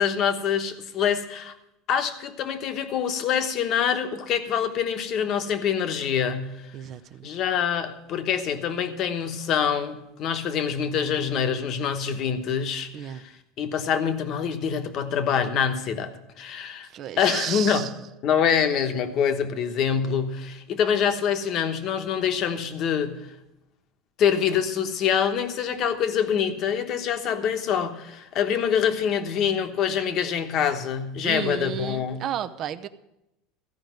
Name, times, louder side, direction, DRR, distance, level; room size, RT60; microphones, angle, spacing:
voice 1, 0.0-1.5 1.9-6.7 7.2-16.9 17.2-17.9 18.2-23.3 24.2-32.2, left 7 dB, 40° left, 8 dB, 1.1 m, -25 dB
voice 2, 6.7-7.3 12.9-13.2 16.8-17.9 31.2-32.9, right 10 dB, 40° right, 11 dB, 0.6 m, -33 dB
14.5 x 5.2 x 9.3 m, 0.88 s
supercardioid pair, 155°, 0 cm